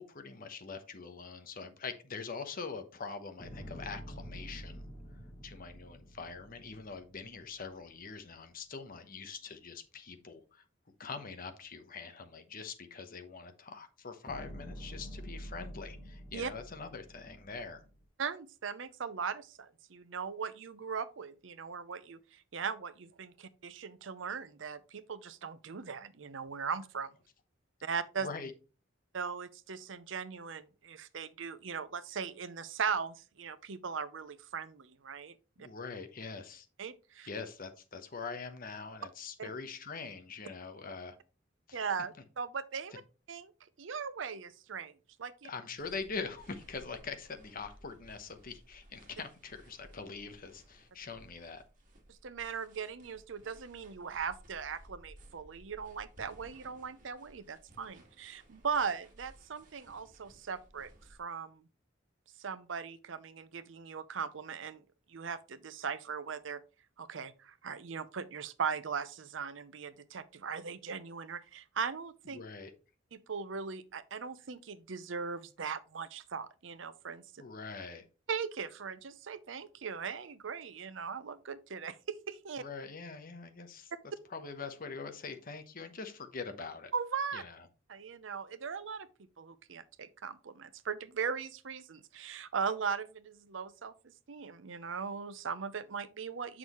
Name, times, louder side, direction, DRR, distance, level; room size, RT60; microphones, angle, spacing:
voice 1, 0.0-4.9 5.4-10.6 11.0-17.8 28.2-28.5 35.6-36.7 37.2-41.2 41.7-41.8 45.4-51.6 72.3-72.7 77.4-78.0 82.6-83.9 84.3-86.9 87.3-87.6, left 4 dB, 45° left, 1.0 m, -43 dB
sound 1, 3.4-7.7 14.3-18.0, equal, 25° left, 2.1 m, -47 dB
voice 2, 18.2-27.1 27.8-28.3 29.1-35.7 36.8-37.3 39.4-39.5 41.7-43.0 43.3-43.5 43.8-45.5 52.1-60.9 61.2-61.6 62.4-64.8 65.1-66.6 67.0-72.4 73.1-77.2 78.3-82.6 86.9-87.4 87.9-89.1 89.4-96.6, right 6 dB, 75° right, 0.6 m, -39 dB
sound 2, 45.8-61.2, equal, 45° right, 1.9 m, -59 dB
7.2 x 6.1 x 3.0 m
head